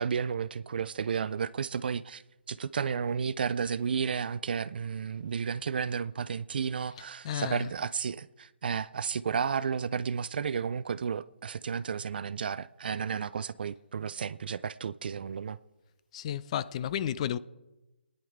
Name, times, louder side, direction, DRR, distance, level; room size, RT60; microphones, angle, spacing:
voice 1, 0.0-2.2 2.5-15.6, right 6 dB, 60° right, 0.4 m, -32 dB
voice 2, 7.2-7.7 16.1-17.4, left 10 dB, 35° left, 0.4 m, -32 dB
28.0 x 10.0 x 3.6 m
hypercardioid pair, 145°, 6 cm